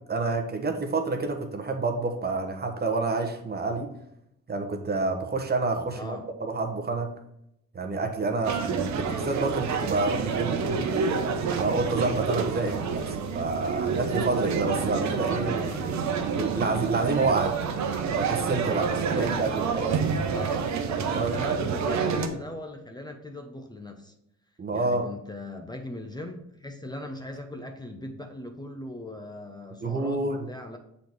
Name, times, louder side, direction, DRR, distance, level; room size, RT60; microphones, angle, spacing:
voice 1, 0.1-3.9 4.5-7.1 7.7-10.9 11.6-13.0 13.3-15.6 16.4-17.5 18.2-19.9 21.1-21.4 24.6-25.0 29.8-30.5, right 3 dB, 30° right, 4 dB, 1.1 m, -28 dB
voice 2, 5.9-6.3 12.6-12.9 15.3-16.0 19.1-19.6 19.9-20.7 21.1-24.1 24.7-30.8, left 1 dB, 15° left, 4 dB, 0.8 m, -39 dB
sound 1, 8.4-22.3, right 5 dB, 65° right, 0.9 m, -28 dB
6.8 x 4.2 x 4.6 m, 0.80 s
cardioid pair, 90°, 30 cm